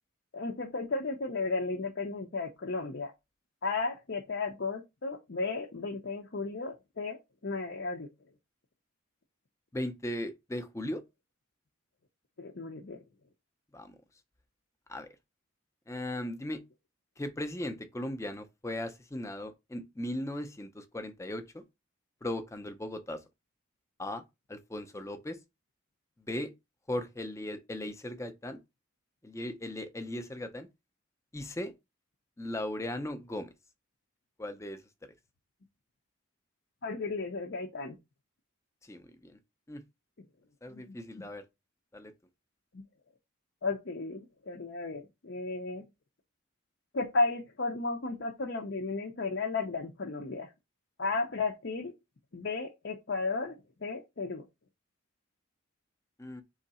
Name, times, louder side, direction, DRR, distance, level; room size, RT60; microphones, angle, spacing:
voice 1, 0.3-3.1 3.6-8.1 12.4-13.0 36.8-38.0 40.7-41.2 42.7-42.8 43.6-45.9 46.9-50.5 51.0-51.9 52.3-54.5, left 3 dB, 55° left, 0.6 m, -34 dB
voice 2, 9.7-11.0 13.7-14.0 14.9-15.1 15.9-16.6 17.2-21.6 22.2-23.2 24.0-24.2 24.5-25.4 26.3-26.5 26.9-28.6 29.2-30.7 31.3-31.7 32.4-33.5 34.4-34.8 38.8-39.4 39.7-39.8 40.6-41.4 41.9-42.1 56.2-56.4, left 1 dB, 15° left, 0.5 m, -37 dB
3.7 x 3.2 x 4.1 m
head